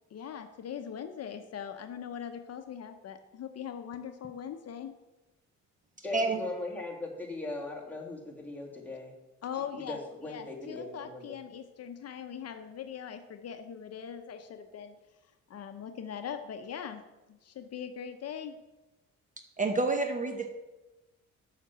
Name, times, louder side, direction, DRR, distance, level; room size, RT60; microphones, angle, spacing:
voice 1, 0.1-4.9 9.4-10.0 10.3-14.9 15.5-17.0 17.3-18.6, left 8 dB, 55° left, 7 dB, 0.7 m, -41 dB
voice 2, 6.0-9.1 9.7-11.4, left 3 dB, 5° left, -2 dB, 2.3 m, -39 dB
voice 3, 19.6-20.5, right 3 dB, 25° right, 6 dB, 0.9 m, -28 dB
7.3 x 5.9 x 7.3 m, 1.1 s
cardioid pair, 90°, 30 cm